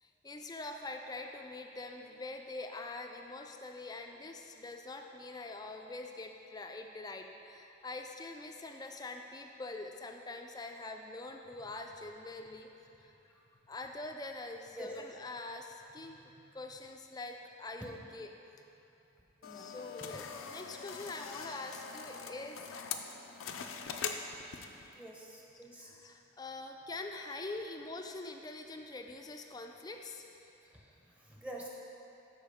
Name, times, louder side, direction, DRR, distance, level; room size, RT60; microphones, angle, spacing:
voice 1, 0.0-12.7 13.0-13.1 13.6-18.3 19.5-22.8 24.7-25.0 25.7-30.2, left 2 dB, 20° left, 4 dB, 0.3 m, -44 dB
sound 1, 19.4-24.9, left 6 dB, 80° left, 0.5 m, -42 dB
voice 2, 24.9-25.9 30.6-31.7, right 1 dB, 5° right, -3 dB, 0.7 m, -48 dB
12.5 x 4.5 x 3.5 m, 2.8 s
head